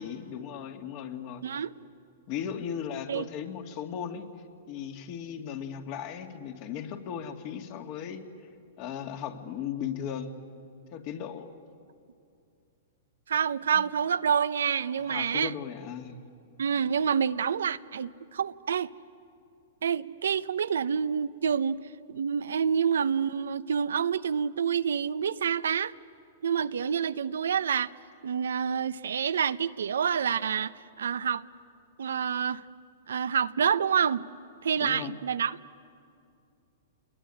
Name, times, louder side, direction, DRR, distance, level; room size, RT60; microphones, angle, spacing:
voice 1, 0.0-1.4 2.3-4.3 4.7-8.2 8.8-10.3 10.9-11.5 13.7-13.9 15.0-16.2 34.8-35.2, left 8 dB, 45° left, 5 dB, 2.4 m, -37 dB
voice 2, 13.3-15.5 16.6-18.9 19.8-21.8 22.1-25.9 26.4-27.9 28.2-31.4 32.0-32.6 33.1-34.3 34.6-35.6, right 7 dB, 85° right, 14 dB, 0.7 m, -27 dB
28.0 x 21.5 x 10.0 m, 2.4 s
hypercardioid pair, 135°, 0 cm